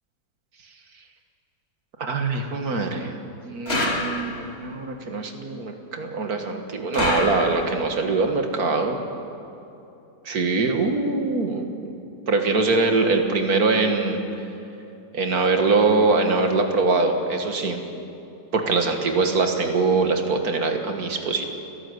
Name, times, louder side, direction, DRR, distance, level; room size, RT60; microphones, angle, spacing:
voice 1, 2.0-3.2 3.4-9.0 10.3-11.9 12.3-14.2 15.1-17.8 18.5-21.4, right 3 dB, 60° right, 4 dB, 2.1 m, -23 dB
sound 1, 3.7-4.6 6.9-7.9, left 2 dB, 35° left, 2.3 m, -27 dB
30.0 x 11.0 x 8.0 m, 2.8 s
omnidirectional pair, 1.9 m